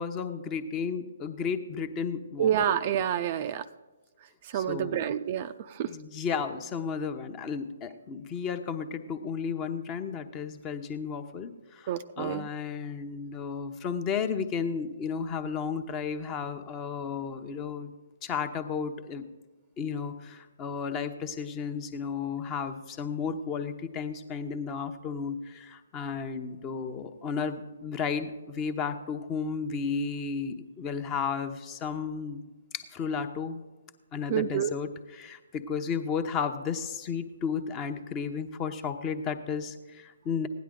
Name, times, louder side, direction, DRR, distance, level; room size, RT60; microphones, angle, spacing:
voice 1, 0.0-2.7 4.5-5.2 5.8-17.9 18.2-19.3 19.8-32.4 32.7-33.6 34.1-40.5, left 6 dB, 20° left, 9 dB, 0.9 m, -33 dB
voice 2, 2.4-3.6 4.5-5.9 11.9-12.5 34.3-34.7, right 9 dB, 35° right, 11 dB, 0.5 m, -28 dB
16.5 x 10.5 x 3.8 m, 1.2 s
figure-of-eight pair, 135°, 0 cm